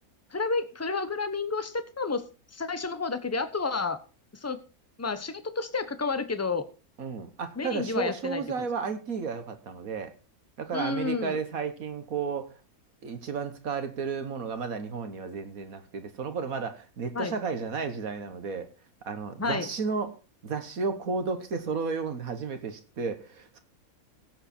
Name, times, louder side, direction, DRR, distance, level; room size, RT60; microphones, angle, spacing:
voice 1, 0.3-2.2 2.5-4.0 4.4-4.6 5.0-6.6 7.6-8.4 10.7-11.4 17.1-17.3 19.4-19.7, left 4 dB, 10° left, 11 dB, 0.9 m, -30 dB
voice 2, 7.0-10.1 10.6-12.5 13.0-18.7 19.1-20.2 20.4-23.6, right 5 dB, 70° right, 9 dB, 1.8 m, -33 dB
16.5 x 7.8 x 4.4 m, 0.34 s
omnidirectional pair, 1.6 m